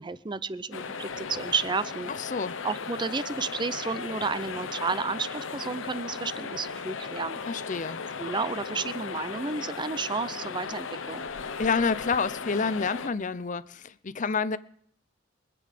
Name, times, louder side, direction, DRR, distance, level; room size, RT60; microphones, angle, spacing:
voice 1, 0.0-2.1 2.6-7.4 8.2-11.3, right 4 dB, 25° right, 0.5 m, -32 dB
sound 1, 0.7-13.1, left 5 dB, 90° left, 0.8 m, -36 dB
voice 2, 2.1-2.6 7.5-8.0 11.6-14.6, left 5 dB, 40° left, 0.6 m, -28 dB
24.0 x 8.6 x 5.1 m
head